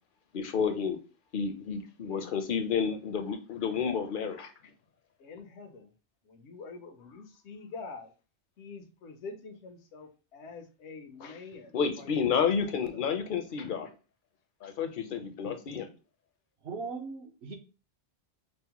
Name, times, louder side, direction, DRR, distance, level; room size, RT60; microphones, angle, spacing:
voice 1, 0.3-1.0 1.3-4.5 11.7-13.9 14.6-15.9, left 6 dB, 60° left, 7 dB, 0.6 m, -30 dB
voice 2, 2.0-2.4 2.8-3.0 5.2-5.9 6.2-8.1 8.6-12.4 12.8-13.0 15.7-15.9, left 4 dB, 85° left, 4 dB, 0.9 m, -46 dB
voice 3, 16.6-17.6, right 4 dB, 70° right, 4 dB, 1.0 m, -38 dB
5.3 x 2.0 x 2.8 m, 0.33 s
omnidirectional pair, 1.1 m